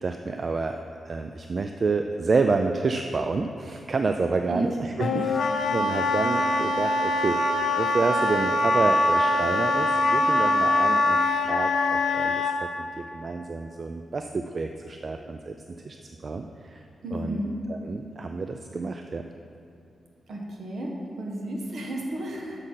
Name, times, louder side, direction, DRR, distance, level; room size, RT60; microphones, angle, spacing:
voice 1, 0.0-7.4 7.8-12.7 13.0-15.6 15.8-16.0 16.2-16.8 17.1-17.4 17.7-19.3, right 4 dB, 45° right, 6 dB, 0.3 m, -29 dB
Wind instrument woodwind instrument, 5.0-12.6, left 2 dB, 75° left, 0.5 m, -23 dB
voice 2, 17.0-17.6 20.3-22.7, right 1 dB, 65° right, 0 dB, 1.3 m, -33 dB
6.5 x 6.3 x 5.7 m, 2.5 s
cardioid pair, 90°, 0 cm